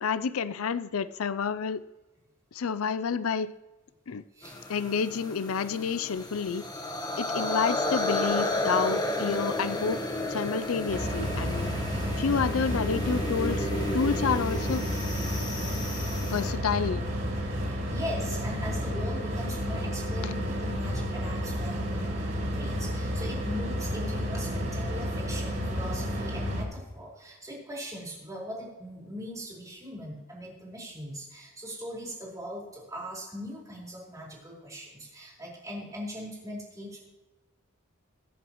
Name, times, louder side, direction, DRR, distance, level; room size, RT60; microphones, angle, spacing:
voice 1, 0.0-1.8 2.5-3.5 4.1-4.2 4.7-6.7 7.2-10.0 10.3-11.8 12.2-14.9 16.2-17.0 20.2-20.3, left 6 dB, 90° left, 15 dB, 0.5 m, -29 dB
sound 1, 4.4-16.5, left 1 dB, 20° left, 1.2 m, -32 dB
sound 2, 10.9-26.6, equal, 60° right, 5.0 m, -31 dB
voice 2, 17.7-37.1, equal, 15° right, -4 dB, 4.5 m, -40 dB
22.5 x 8.0 x 3.1 m, 1.1 s
head